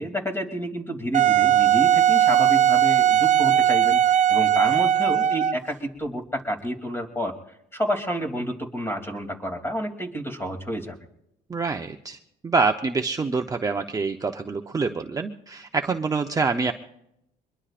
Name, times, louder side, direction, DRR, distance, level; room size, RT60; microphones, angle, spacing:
voice 1, 0.0-7.3 7.7-11.0, equal, 15° left, 3 dB, 3.0 m, -29 dB
Wind instrument woodwind instrument, 1.1-5.7, right 10 dB, 45° right, 0.5 m, -19 dB
voice 2, 11.5-12.2 12.4-16.7, right 4 dB, 20° right, 5 dB, 0.8 m, -26 dB
23.5 x 21.5 x 2.5 m, 0.80 s
cardioid pair, 110°, 17 cm